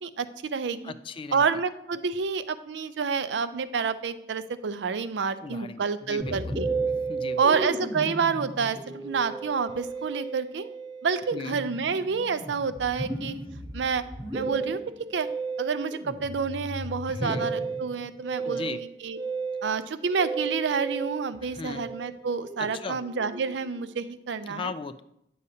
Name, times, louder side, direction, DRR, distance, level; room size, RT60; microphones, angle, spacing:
voice 1, 0.0-0.9 1.3-6.7 7.4-10.7 11.0-13.4 13.7-14.0 14.3-14.8 15.1-15.3 15.6-19.2 19.6-24.7, right 5 dB, 80° right, 12 dB, 0.5 m, -28 dB
voice 2, 0.8-1.4 5.2-6.5 7.0-7.6 11.3-11.6 17.1-17.5 18.4-18.8 21.4-21.9 22.6-23.0 24.4-25.0, left 4 dB, 30° left, 12 dB, 0.3 m, -37 dB
Musical instrument, 6.2-23.8, right 3 dB, 20° right, 1.0 m, -34 dB
9.4 x 6.4 x 2.7 m, 0.80 s
head